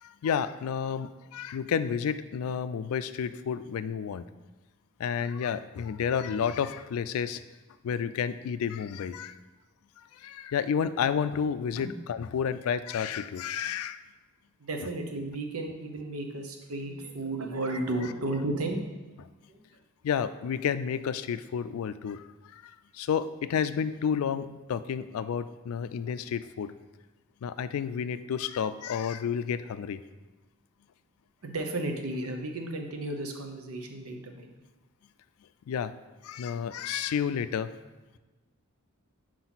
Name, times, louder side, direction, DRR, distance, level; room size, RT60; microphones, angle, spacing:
voice 1, 0.0-4.2 5.0-7.4 7.8-9.3 10.1-14.0 20.0-22.3 22.5-26.7 27.4-30.0 35.7-35.9 36.2-37.7, left 7 dB, 75° left, 13 dB, 0.3 m, -31 dB
voice 2, 14.6-18.8 19.5-19.6 31.4-34.5, right 2 dB, 85° right, 4 dB, 0.8 m, -33 dB
6.0 x 4.6 x 4.0 m, 1.2 s
head